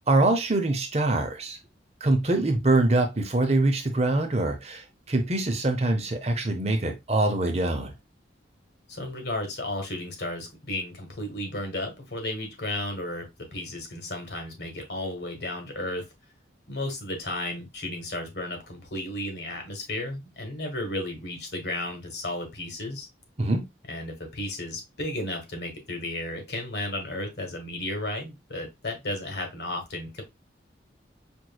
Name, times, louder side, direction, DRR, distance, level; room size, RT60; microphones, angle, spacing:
voice 1, 0.1-1.6 2.0-7.9 23.4-23.6, right 2 dB, 35° right, 0.7 m, -24 dB
voice 2, 8.9-16.1 16.7-23.1 23.9-30.2, left 1 dB, 65° left, 1.4 m, -33 dB
5.2 x 3.1 x 2.2 m
head